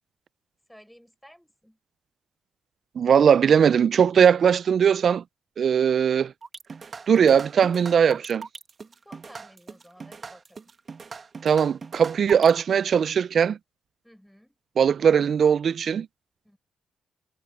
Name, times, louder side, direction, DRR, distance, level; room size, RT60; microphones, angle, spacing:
voice 1, 0.7-1.8 9.0-10.6 14.0-14.6 16.4-16.6, equal, ahead, 6.2 m, -53 dB
voice 2, 3.0-5.2 5.6-6.3 7.1-8.5 11.4-13.6 14.8-16.1, right 7 dB, 55° right, 0.3 m, -19 dB
sound 1, 6.4-12.6, right 5 dB, 40° right, 1.3 m, -41 dB
cardioid pair, 100°, 0 cm